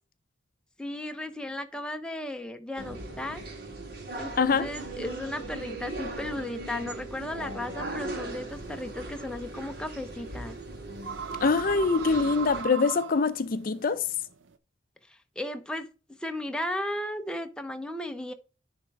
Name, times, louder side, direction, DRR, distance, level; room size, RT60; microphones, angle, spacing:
voice 1, 0.8-3.4 4.1-10.6 15.1-15.9 16.2-18.3, left 1 dB, 5° left, 0.6 m, -35 dB
sound 1, 2.8-12.6, right 2 dB, 50° right, 2.1 m, -39 dB
voice 2, 4.4-4.7 11.4-14.1, left 4 dB, 50° left, 0.5 m, -24 dB
sound 2, 8.5-14.5, right 6 dB, 80° right, 0.6 m, -39 dB
10.0 x 3.5 x 4.5 m
head